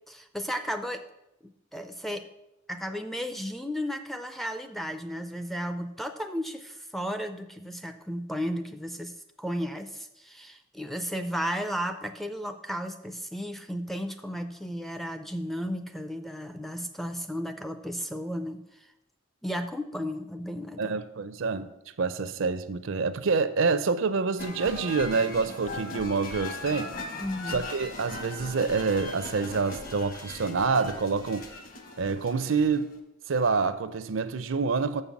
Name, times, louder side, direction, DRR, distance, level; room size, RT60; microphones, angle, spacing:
voice 1, 0.1-1.0 1.7-2.2 2.7-18.9 19.4-21.0 27.2-27.6, equal, ahead, 0.4 m, -34 dB
voice 2, 20.8-21.7 22.0-26.9 27.5-31.5 32.0-32.9 33.3-35.0, right 4 dB, 75° right, 0.5 m, -27 dB
sound 1, 24.4-33.0, left 3 dB, 45° left, 1.1 m, -39 dB
6.8 x 5.5 x 7.1 m
head